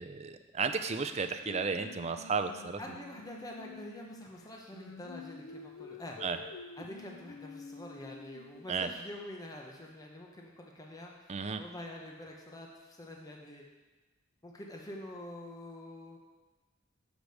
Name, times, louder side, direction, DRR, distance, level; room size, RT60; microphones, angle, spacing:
voice 1, 0.0-2.8 6.2-6.4 8.7-8.9 11.3-11.6, right 5 dB, 35° right, 8 dB, 0.4 m, -33 dB
Singing, 1.4-8.7, left 4 dB, 80° left, 0.6 m, -49 dB
voice 2, 2.8-6.2 6.8-13.7 14.4-16.2, left 1 dB, 20° left, 0 dB, 0.8 m, -46 dB
6.1 x 5.2 x 6.4 m, 1.2 s
head